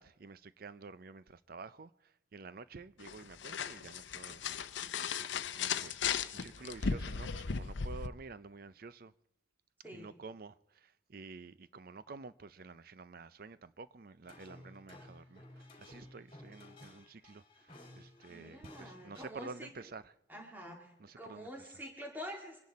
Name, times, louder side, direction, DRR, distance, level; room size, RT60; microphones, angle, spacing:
voice 1, 0.0-9.1 9.9-20.1 21.0-21.7, right 4 dB, 50° right, 0.5 m, -50 dB
sound 1, 3.0-8.1, left 6 dB, 75° left, 0.6 m, -36 dB
sound 2, 14.2-19.3, left 1 dB, 30° left, 3.6 m, -55 dB
voice 2, 18.3-19.7 20.3-22.6, equal, 10° right, 2.2 m, -47 dB
24.0 x 10.5 x 4.2 m
head